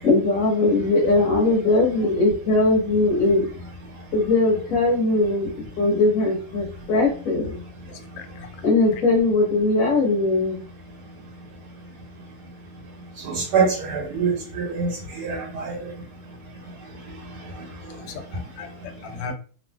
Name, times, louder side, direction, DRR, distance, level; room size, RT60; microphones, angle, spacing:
voice 1, 0.0-3.5 4.1-5.5 5.8-7.6 8.6-10.6, left 2 dB, 45° left, 1.3 m, -20 dB
voice 2, 7.9-8.5 18.0-19.3, left 5 dB, 80° left, 1.5 m, -38 dB
voice 3, 13.2-15.9, right 5 dB, 80° right, 1.6 m, -25 dB
3.4 x 2.3 x 2.2 m
omnidirectional pair, 2.4 m